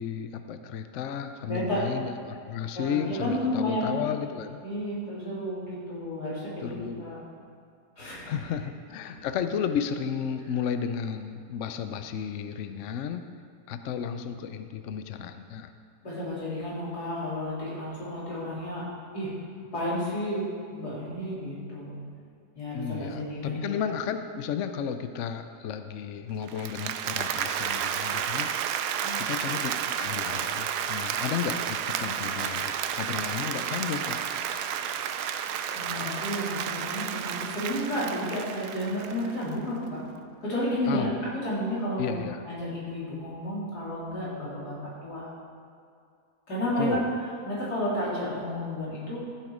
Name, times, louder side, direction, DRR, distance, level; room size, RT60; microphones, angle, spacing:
voice 1, 0.0-4.6 6.6-7.1 8.2-13.2 13.7-15.7 22.7-28.5 29.2-34.2 40.9-41.1 42.0-42.4 46.8-47.0, left 7 dB, 65° left, 9 dB, 0.8 m, -33 dB
voice 2, 1.5-1.8 2.7-3.9 4.6-7.2 8.0-8.4 16.0-18.8 19.1-19.3 19.7-20.4 20.7-22.0 22.5-23.6 29.0-29.2 35.7-40.0 40.4-41.1 41.4-42.1 42.4-44.7 45.0-45.3 46.5-47.0 47.5-49.2, left 1 dB, 85° left, -8 dB, 4.1 m, -31 dB
Applause, 26.5-39.5, right 9 dB, 90° right, 1.2 m, -31 dB
14.0 x 8.0 x 5.0 m, 2.4 s
omnidirectional pair, 1.7 m